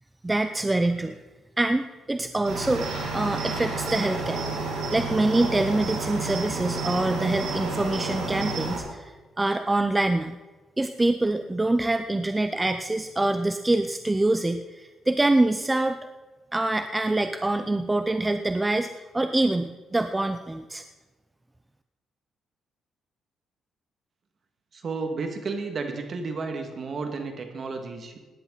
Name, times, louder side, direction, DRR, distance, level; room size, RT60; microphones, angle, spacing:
voice 1, 0.2-1.2 1.6-4.4 4.9-9.1 9.4-10.4 10.8-16.0 16.5-18.9 19.1-20.8, right 2 dB, 15° right, 9 dB, 0.6 m, -25 dB
Cricket, 2.4-8.8, right 3 dB, 90° right, 5.3 m, -30 dB
voice 2, 24.7-28.2, right 4 dB, 50° right, 5 dB, 2.2 m, -32 dB
17.5 x 10.5 x 4.1 m, 1.2 s
cardioid pair, 90°, 0 cm